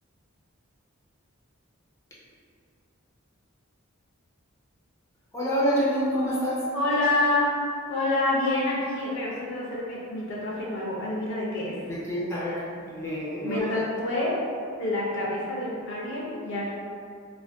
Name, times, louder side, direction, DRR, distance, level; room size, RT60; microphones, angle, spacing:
voice 1, 5.3-6.6 11.9-13.7, equal, 15° left, -8 dB, 0.6 m, -27 dB
voice 2, 6.7-7.5 7.9-11.7 13.4-14.3 14.8-16.7, left 2 dB, 60° left, -5 dB, 0.6 m, -27 dB
2.5 x 2.2 x 3.4 m, 2.3 s
head